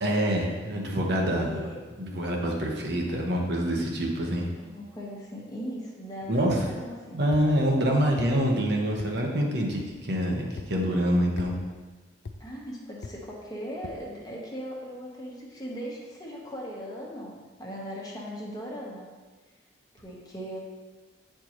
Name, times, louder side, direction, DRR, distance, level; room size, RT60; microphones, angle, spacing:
voice 1, 0.0-1.7 2.0-4.5 6.3-6.7 7.1-11.5, equal, 65° right, -1 dB, 1.0 m, -26 dB
voice 2, 1.3-1.8 4.6-7.2 12.4-19.1 19.9-20.6, equal, 20° left, -3 dB, 1.1 m, -39 dB
sound 1, 7.3-7.5 8.2-8.3 9.0-9.1 9.8-9.9 10.6-10.7 11.4-11.5 12.2-12.4 13.0-13.2 13.8-14.0, left 4 dB, 70° left, 0.4 m, -39 dB
8.4 x 4.5 x 3.0 m, 1.4 s
head